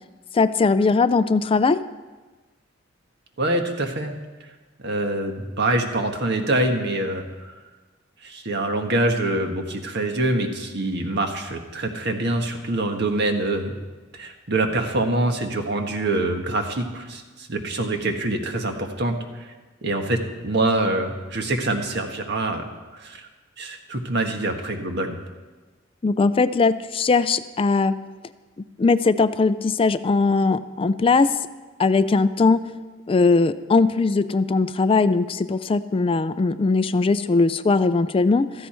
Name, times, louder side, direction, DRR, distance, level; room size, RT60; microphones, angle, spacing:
voice 1, 0.3-1.8 26.0-27.9 28.8-31.4 31.8-32.7 33.1-38.7, left 4 dB, 30° left, 13 dB, 0.4 m, -20 dB
voice 2, 3.4-4.1 4.8-7.5 8.2-13.7 14.1-19.5 19.8-20.2 20.4-22.6 22.9-23.3 23.6-25.2, right 2 dB, 60° right, 4 dB, 1.6 m, -25 dB
15.5 x 13.5 x 4.4 m, 1.3 s
head